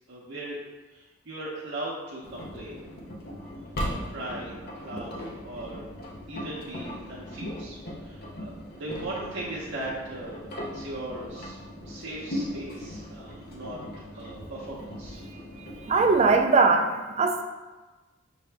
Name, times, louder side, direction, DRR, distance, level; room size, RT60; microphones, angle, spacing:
voice 1, 0.1-0.6 0.9-2.8 3.4-3.5 3.8-5.9 6.3-11.6 11.9-13.8 14.1-15.2, right 1 dB, 60° right, -6 dB, 0.7 m, -38 dB
Engine, 2.2-16.4, equal, 50° left, 0.7 m, -38 dB
voice 2, 15.9-17.4, right 4 dB, 30° right, 5 dB, 0.3 m, -21 dB
5.9 x 2.7 x 3.3 m, 1.2 s
head